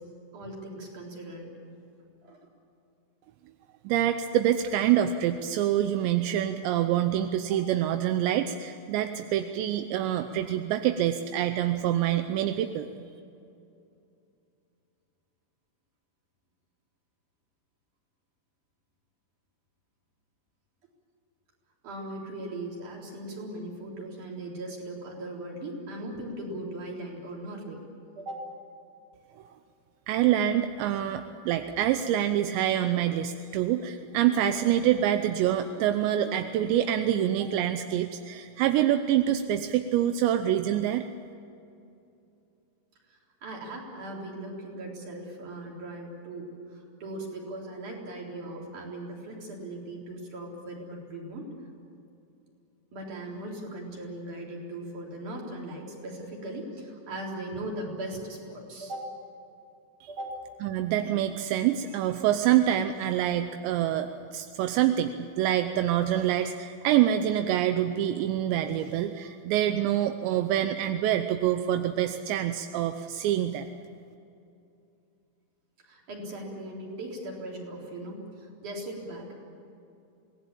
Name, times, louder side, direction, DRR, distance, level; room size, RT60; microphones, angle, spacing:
voice 1, 0.3-1.5 2.2-2.4 7.5-7.6 21.8-27.8 28.2-28.5 37.4-37.5 43.1-51.5 52.9-59.1 60.1-60.4 75.8-79.3, right 1 dB, 40° right, -1 dB, 5.1 m, -39 dB
voice 2, 3.8-12.9 30.1-41.0 60.0-60.1 60.6-73.7, right 11 dB, 80° right, 8 dB, 2.6 m, -26 dB
26.5 x 18.5 x 8.7 m, 2.6 s
omnidirectional pair, 5.8 m